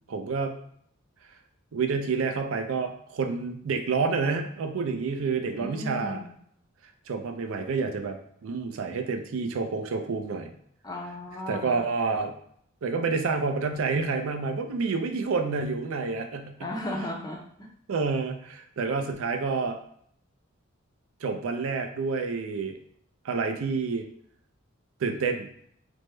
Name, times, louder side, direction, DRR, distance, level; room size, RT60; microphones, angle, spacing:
voice 1, 0.1-0.6 1.7-6.2 7.1-8.2 8.4-10.5 11.5-12.3 12.8-16.7 17.9-19.8 21.2-22.7 23.2-24.1 25.0-25.5, right 4 dB, 75° right, 5 dB, 0.4 m, -28 dB
voice 2, 5.5-6.3 10.8-11.8 16.6-17.7, left 1 dB, 20° left, 0 dB, 0.4 m, -35 dB
3.4 x 2.0 x 3.1 m, 0.66 s
head